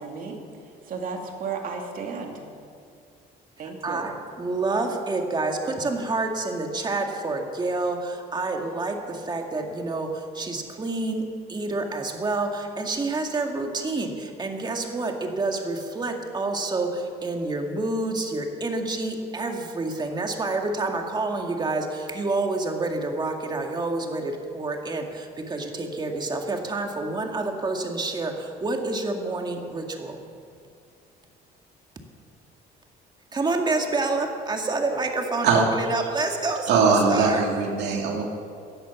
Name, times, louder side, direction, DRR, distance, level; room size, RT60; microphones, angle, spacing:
voice 1, 0.0-2.4 3.6-4.0, right 5 dB, 55° right, 2 dB, 2.7 m, -34 dB
voice 2, 3.8-30.2 33.3-37.5, right 3 dB, 25° right, 3 dB, 2.1 m, -28 dB
voice 3, 36.7-38.2, right 5 dB, 80° right, 0 dB, 2.4 m, -21 dB
17.0 x 11.0 x 7.1 m, 2.3 s
cardioid pair, 110°, 17 cm